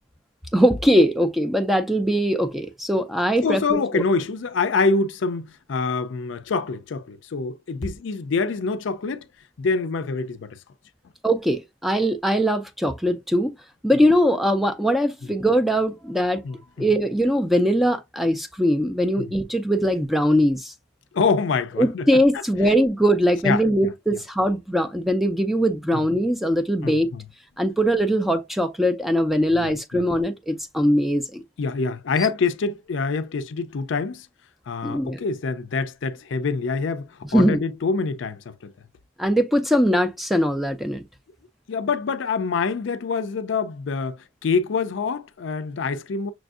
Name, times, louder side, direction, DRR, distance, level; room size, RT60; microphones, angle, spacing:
voice 1, 0.5-4.0 11.2-13.5 13.8-16.4 16.8-20.7 21.8-27.1 27.6-31.4 34.8-35.2 37.3-37.6 39.2-41.0, equal, ahead, 0.4 m, -21 dB
voice 2, 3.4-9.3 9.6-10.6 16.4-16.9 19.2-19.3 21.1-22.4 23.4-24.2 25.9-26.0 26.8-27.2 29.6-30.0 31.6-34.3 34.7-38.7 41.7-46.3, left 4 dB, 70° left, 0.4 m, -26 dB
6.0 x 2.6 x 2.3 m
head